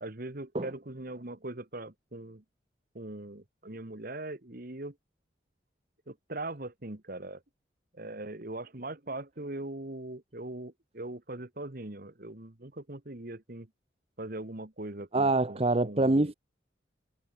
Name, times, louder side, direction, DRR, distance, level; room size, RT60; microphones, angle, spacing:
voice 1, 0.0-2.4 2.9-5.0 6.1-7.4 7.9-13.7 14.2-16.3, right 2 dB, 50° right, 1.8 m, -41 dB
voice 2, 15.1-16.3, right 2 dB, 35° right, 0.9 m, -25 dB
head